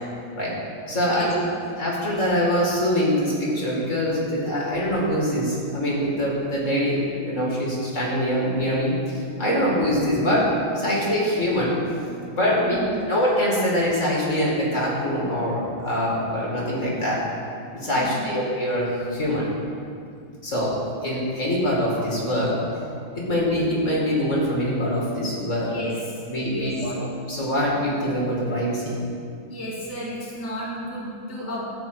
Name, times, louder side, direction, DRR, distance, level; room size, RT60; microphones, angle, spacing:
voice 1, 0.9-1.3 1.8-11.8 12.3-12.8 13.1-17.2 17.7-19.5 20.4-22.8 23.2-25.7 26.3-26.9 27.3-29.0, equal, 35° left, -5 dB, 2.5 m, -24 dB
voice 2, 12.6-13.1 17.9-18.5 25.7-26.9 29.5-31.7, equal, 10° right, -7 dB, 1.9 m, -34 dB
13.5 x 5.2 x 7.9 m, 2.4 s
omnidirectional pair, 2.3 m